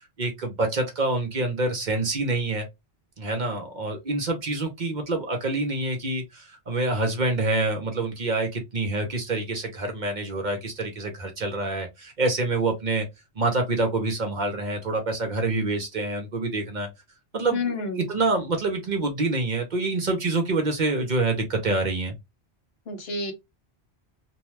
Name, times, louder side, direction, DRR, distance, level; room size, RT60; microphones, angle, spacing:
voice 1, 0.2-2.7 3.2-13.1 13.4-16.9 17.3-22.1, right 2 dB, 50° right, 0.8 m, -26 dB
voice 2, 17.5-18.1 22.9-23.3, left 3 dB, 70° left, 1.1 m, -29 dB
2.8 x 2.2 x 3.0 m
omnidirectional pair, 1.1 m